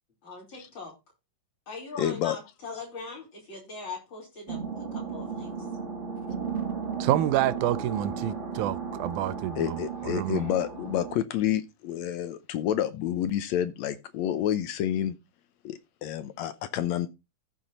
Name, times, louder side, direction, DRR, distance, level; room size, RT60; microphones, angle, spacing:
voice 1, 0.2-0.9 1.7-5.7, left 4 dB, 35° left, 5.3 m, -41 dB
voice 2, 2.0-2.4 9.6-15.2 15.6-17.1, left 11 dB, 75° left, 1.7 m, -29 dB
sound 1, 4.5-11.2, right 6 dB, 30° right, 1.6 m, -35 dB
voice 3, 7.0-9.8 10.0-10.5, right 13 dB, 80° right, 2.0 m, -28 dB
14.5 x 4.9 x 4.0 m
omnidirectional pair, 3.7 m